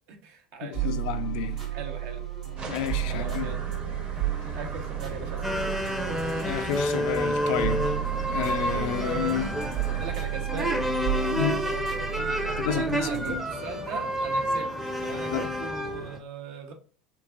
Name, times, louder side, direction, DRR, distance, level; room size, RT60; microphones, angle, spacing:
voice 1, 0.1-0.9 1.4-2.2 3.1-3.7 4.5-5.5 9.8-10.8 11.1-14.7 15.0-16.7, right 5 dB, 60° right, 0.8 m, -40 dB
voice 2, 0.6-1.6 2.7-3.5 6.4-7.9 8.3-9.6 11.4-11.6 12.6-13.3 15.3-15.5, left 10 dB, 70° left, 0.4 m, -31 dB
sound 1, 0.7-14.5, right 14 dB, 90° right, 1.4 m, -33 dB
sound 2, 2.6-10.2, right 2 dB, 30° right, 0.9 m, -38 dB
sound 3, 5.4-16.2, equal, 5° right, 0.6 m, -29 dB
3.9 x 2.4 x 2.3 m
hypercardioid pair, 80°, 4 cm